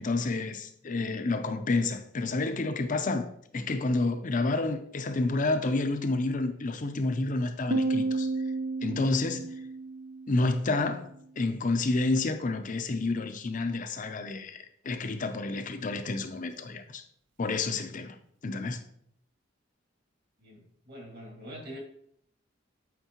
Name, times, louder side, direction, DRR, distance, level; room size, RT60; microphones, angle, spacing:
voice 1, 0.0-8.3 8.8-9.5 10.3-11.1 11.4-17.0 17.4-18.2 18.4-18.8, left 3 dB, 45° left, 0.6 m, -29 dB
Piano, 7.7-11.1, right 3 dB, 75° right, 0.8 m, -32 dB
voice 2, 20.4-21.8, equal, 55° right, 2.3 m, -44 dB
8.1 x 4.5 x 3.0 m
head